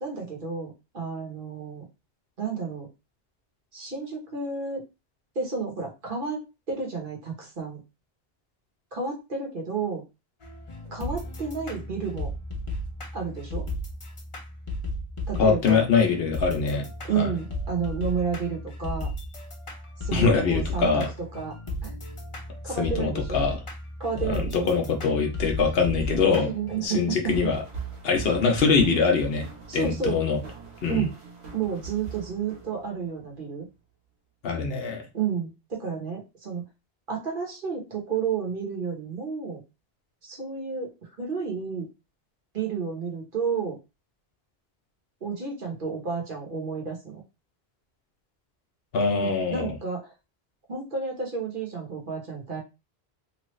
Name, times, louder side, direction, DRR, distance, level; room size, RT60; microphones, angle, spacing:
voice 1, 0.0-1.8 2.4-2.9 3.7-4.8 5.3-7.8 8.9-10.0 10.9-12.3 13.1-13.7 15.3-15.8 17.0-19.1 20.0-21.0 21.3-21.5 21.8-21.9 22.6-23.4 24.0-24.7 26.3-27.3 29.7-30.2 30.9-31.1 31.5-33.7 35.1-36.6 37.1-39.6 40.2-41.9 42.5-43.8 45.2-47.2 49.2-50.1 50.7-52.6, right 5 dB, 55° right, 0 dB, 1.2 m, -31 dB
sound 1, 10.4-26.9, left 1 dB, 35° left, 0.7 m, -35 dB
voice 2, 15.4-16.9 17.1-17.3 20.1-21.1 22.8-23.6 24.2-26.5 26.8-27.6 28.0-29.5 29.7-30.4 30.8-31.1 34.4-35.1 48.9-49.8, left 5 dB, 65° left, 3 dB, 0.9 m, -23 dB
sound 2, 27.2-33.2, right 6 dB, 90° right, 1.2 m, -40 dB
3.0 x 2.4 x 3.0 m, 0.26 s
omnidirectional pair, 1.1 m